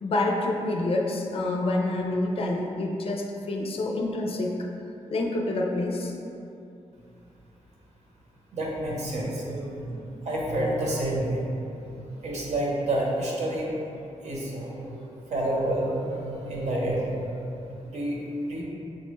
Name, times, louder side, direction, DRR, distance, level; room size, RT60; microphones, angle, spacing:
voice 1, 0.0-4.5 5.1-6.1, left 2 dB, 50° left, 0 dB, 0.4 m, -27 dB
voice 2, 8.5-11.9 12.2-13.7 14.2-15.0 15.3-18.2 18.4-18.6, right 1 dB, 65° right, -4 dB, 0.9 m, -29 dB
6.3 x 2.2 x 3.1 m, 2.8 s
wide cardioid pair, 175°, 12 cm